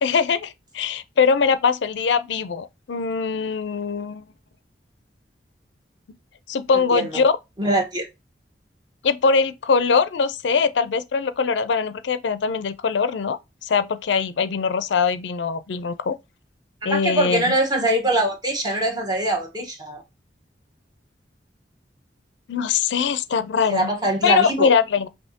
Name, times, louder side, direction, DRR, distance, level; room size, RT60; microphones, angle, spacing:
voice 1, 0.0-4.2 6.5-7.3 9.0-16.2 16.8-17.4 22.5-23.9 24.2-25.1, left 5 dB, 85° left, 0.4 m, -22 dB
voice 2, 6.7-7.2 7.6-8.1 16.8-20.0 23.7-24.7, right 1 dB, 25° right, 1.1 m, -23 dB
5.6 x 2.7 x 2.7 m
head